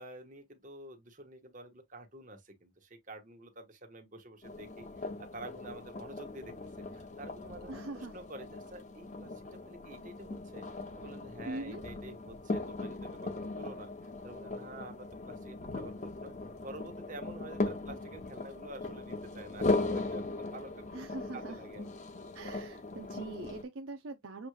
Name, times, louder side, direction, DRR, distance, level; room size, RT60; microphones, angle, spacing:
voice 1, 0.0-6.5 6.9-10.6 10.9-13.9 14.2-16.3 16.6-21.0 21.3-21.9, right 1 dB, 40° right, 1.2 m, -49 dB
sound 1, 4.4-23.6, left 2 dB, 35° left, 0.7 m, -38 dB
voice 2, 7.7-8.2 11.5-11.8 20.9-21.6 22.3-24.5, right 2 dB, 65° right, 0.6 m, -42 dB
7.0 x 3.2 x 2.2 m
head